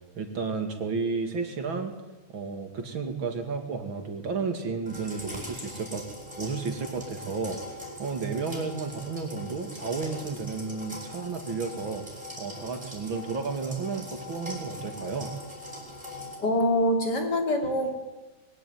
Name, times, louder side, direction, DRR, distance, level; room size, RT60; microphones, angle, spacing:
voice 1, 0.1-1.9 2.3-6.0 6.4-7.6 8.0-12.0 12.4-15.3, right 4 dB, 60° right, 5 dB, 3.1 m, -32 dB
sound 1, 4.9-16.4, left 1 dB, 15° right, 7.9 m, -41 dB
voice 2, 16.4-17.9, left 1 dB, 45° left, 3 dB, 3.9 m, -24 dB
22.0 x 17.5 x 9.4 m, 1.1 s
omnidirectional pair, 2.4 m